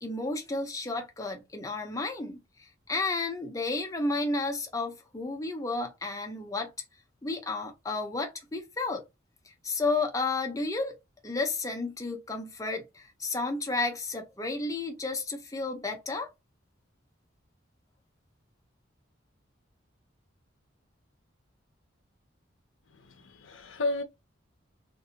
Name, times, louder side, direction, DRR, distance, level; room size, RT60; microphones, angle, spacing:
voice 1, 0.0-6.7 7.2-9.0 9.5-11.0 11.2-16.3, left 3 dB, 15° left, 0.6 m, -32 dB
voice 2, 22.9-24.0, left 2 dB, 75° left, 0.6 m, -33 dB
2.7 x 2.6 x 2.7 m
head